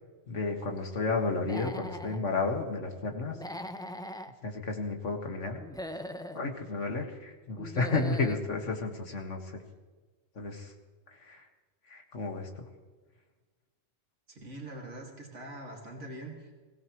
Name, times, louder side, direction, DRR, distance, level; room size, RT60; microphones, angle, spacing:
voice 1, 0.3-3.4 4.4-5.6 6.3-9.6 10.4-10.7 11.2-11.4 11.9-12.6, left 3 dB, 85° left, 3 dB, 2.2 m, -32 dB
Human voice / Animal, 1.4-2.2 3.3-4.3 5.6-6.4 7.6-8.4, left 1 dB, 5° left, 0.5 m, -40 dB
voice 2, 14.3-16.6, right 1 dB, 80° right, 0 dB, 2.7 m, -43 dB
23.0 x 16.5 x 3.2 m, 1.3 s
omnidirectional pair, 1.2 m